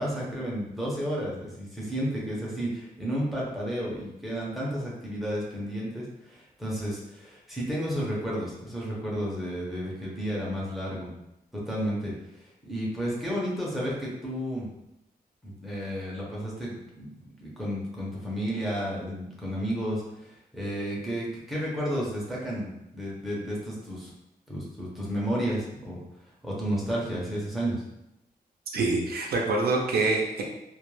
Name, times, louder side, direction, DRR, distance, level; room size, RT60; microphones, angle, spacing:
voice 1, 0.0-11.1 11.7-12.1 12.6-14.7 15.4-24.1 24.5-26.0 26.4-27.8, equal, ahead, -6 dB, 0.6 m, -32 dB
voice 2, 28.7-30.4, right 3 dB, 75° right, 0 dB, 0.5 m, -25 dB
2.2 x 2.1 x 3.0 m, 0.88 s
wide cardioid pair, 170°, 16 cm